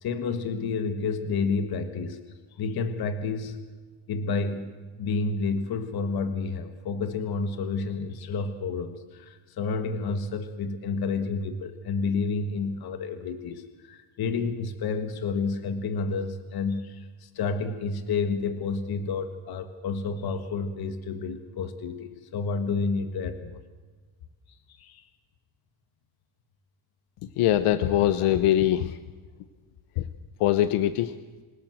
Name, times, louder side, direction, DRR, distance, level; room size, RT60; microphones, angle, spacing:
voice 1, 0.0-2.2 2.5-3.6 4.1-23.6 24.7-25.1, left 4 dB, 45° left, 9 dB, 1.6 m, -30 dB
voice 2, 27.4-29.0 30.0-30.1 30.4-31.1, left 12 dB, 85° left, 12 dB, 1.1 m, -22 dB
28.0 x 17.0 x 7.8 m, 1.4 s
cardioid pair, 165°, 50 cm